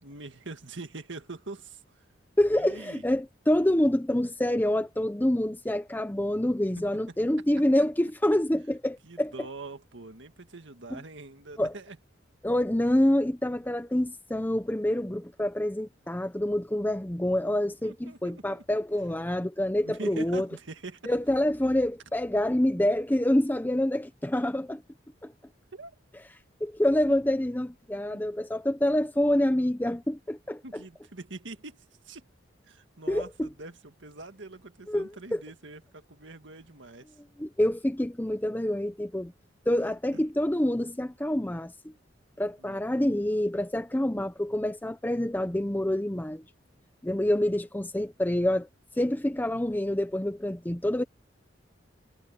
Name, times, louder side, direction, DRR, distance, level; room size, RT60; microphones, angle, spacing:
voice 1, 0.0-2.0 2.5-3.0 7.1-7.2 9.0-12.0 17.8-18.6 19.8-21.1 25.7-25.9 30.6-32.3 32.6-37.1 39.8-40.2 42.6-42.8, right 2 dB, 75° right, 1.9 m, -43 dB
voice 2, 2.4-9.3 10.9-11.0 11.6-11.7 12.4-20.5 21.1-24.8 25.2-25.3 26.6-30.8 33.1-33.5 34.9-35.4 37.4-39.3 39.7-41.7 42.4-46.4 47.0-48.7 49.0-51.0, left 1 dB, 10° left, 0.8 m, -27 dB
head